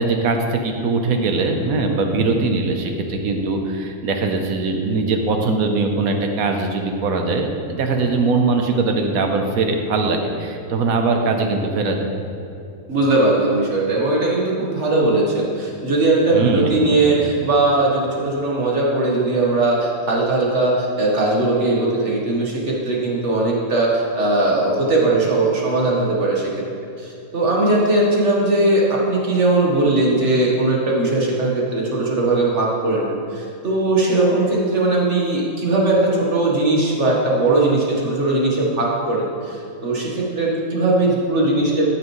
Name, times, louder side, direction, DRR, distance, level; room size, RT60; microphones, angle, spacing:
voice 1, 0.0-12.1 16.3-17.0, right 3 dB, 80° right, 4 dB, 1.3 m, -21 dB
voice 2, 12.9-26.5 27.0-41.9, right 2 dB, 55° right, -3 dB, 1.6 m, -19 dB
14.0 x 5.9 x 3.1 m, 2.7 s
omnidirectional pair, 1.5 m